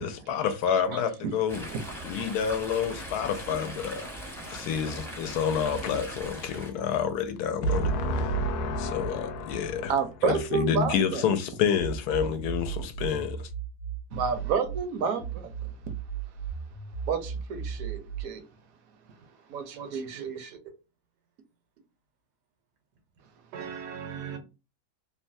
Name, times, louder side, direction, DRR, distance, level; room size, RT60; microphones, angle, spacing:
voice 1, 0.0-1.7 2.0-9.9 10.2-13.5, left 6 dB, 75° left, 1.1 m, -28 dB
Chatter / Stream, 1.5-6.7, right 1 dB, 5° left, 0.5 m, -40 dB
voice 2, 9.9-11.2 14.1-15.5 17.1-18.4 19.5-20.3, right 6 dB, 70° right, 1.0 m, -30 dB
sound 1, 11.8-14.8 15.2-18.2, right 7 dB, 60° left, 0.7 m, -36 dB
voice 3, 19.7-20.6 23.5-24.4, right 7 dB, 90° right, 1.4 m, -39 dB
3.1 x 2.2 x 2.5 m
omnidirectional pair, 1.7 m